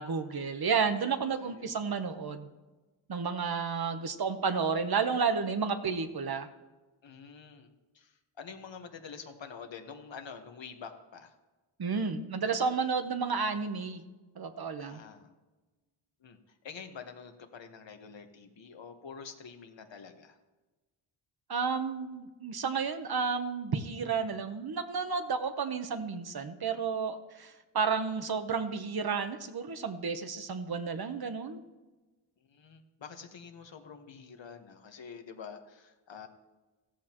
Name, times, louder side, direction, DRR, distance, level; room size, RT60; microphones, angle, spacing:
voice 1, 0.0-2.5 3.1-6.5 11.8-14.0 14.3-15.0 21.5-31.6, right 5 dB, 50° right, 8 dB, 1.0 m, -31 dB
voice 2, 7.0-7.7 7.9-11.3 14.8-15.3 16.2-16.4 16.6-20.4 32.5-36.3, left 6 dB, 65° left, 5 dB, 1.4 m, -47 dB
15.0 x 14.0 x 3.0 m, 1.2 s
wide cardioid pair, 95°, 49 cm